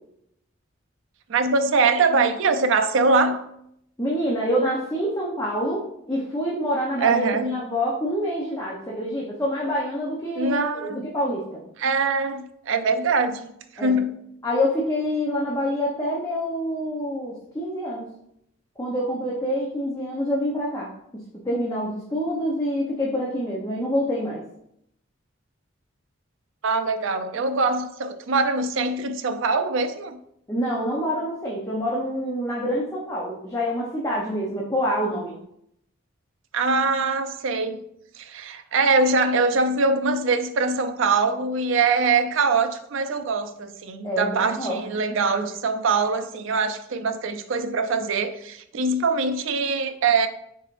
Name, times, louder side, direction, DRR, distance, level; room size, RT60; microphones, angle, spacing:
voice 1, 1.3-3.4 7.0-7.6 10.4-11.0 11.8-14.2 26.6-30.2 36.5-37.8 38.2-50.3, right 4 dB, 70° right, 9 dB, 0.4 m, -23 dB
voice 2, 4.0-7.3 7.5-11.6 13.8-13.9 14.4-18.1 18.8-24.4 30.5-35.3 44.0-45.3, equal, 15° left, -5 dB, 0.6 m, -26 dB
4.5 x 4.0 x 2.5 m, 0.74 s
head